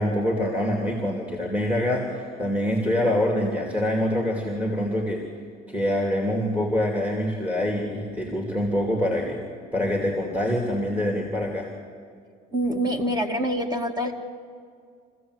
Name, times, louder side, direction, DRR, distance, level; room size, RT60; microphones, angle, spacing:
voice 1, 0.0-5.2 5.7-9.4 9.7-11.7, left 1 dB, 10° right, 1 dB, 2.7 m, -25 dB
voice 2, 12.5-14.1, equal, 25° right, 4 dB, 2.3 m, -25 dB
25.0 x 15.5 x 8.0 m, 2.2 s
cardioid pair, 110°, 17 cm